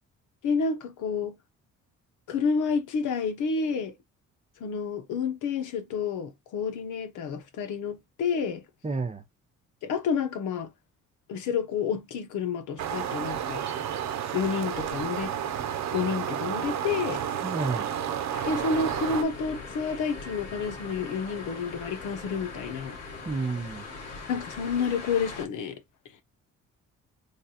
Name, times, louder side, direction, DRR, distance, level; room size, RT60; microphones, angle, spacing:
voice 1, 0.4-1.4 2.3-3.9 4.6-8.6 9.8-10.7 11.3-13.6 14.3-15.3 15.9-17.2 18.5-23.0 24.3-25.8, left 5 dB, 85° left, 1.0 m, -29 dB
voice 2, 8.8-9.2 17.4-17.9 23.2-23.9, right 3 dB, 20° right, 0.8 m, -30 dB
sound 1, 12.8-19.2, right 9 dB, 65° right, 0.7 m, -31 dB
sound 2, 18.3-25.5, left 3 dB, 55° left, 1.6 m, -41 dB
3.4 x 2.3 x 4.2 m
cardioid pair, 90°, 30 cm